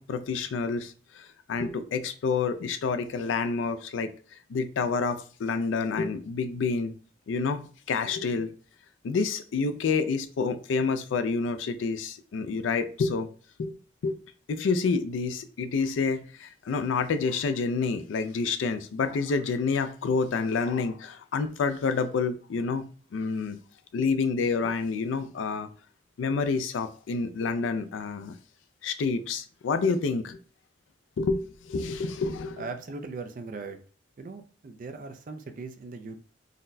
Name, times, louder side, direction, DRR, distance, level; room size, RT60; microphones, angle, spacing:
voice 1, 0.0-6.9 7.3-8.5 9.0-13.3 13.6-13.8 14.0-14.2 14.5-23.6 23.9-25.7 26.2-28.4 28.8-30.4 31.2-32.6, left 4 dB, 90° left, 10 dB, 0.4 m, -28 dB
voice 2, 32.6-33.8 34.2-36.2, right 3 dB, 45° right, 7 dB, 0.3 m, -39 dB
3.9 x 2.1 x 2.5 m, 0.41 s
head